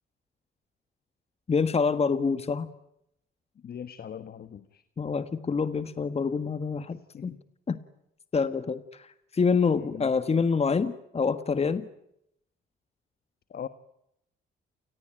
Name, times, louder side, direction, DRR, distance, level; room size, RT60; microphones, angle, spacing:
voice 1, 1.5-2.7 5.0-7.3 7.7-7.8 8.3-9.1 9.3-11.9, left 5 dB, 30° left, 13 dB, 1.4 m, -26 dB
voice 2, 3.6-4.8 7.1-7.4 9.7-10.1 13.5-13.7, left 8 dB, 50° left, 13 dB, 1.4 m, -40 dB
29.5 x 19.5 x 9.0 m, 0.80 s
cardioid pair, 90°, 20 cm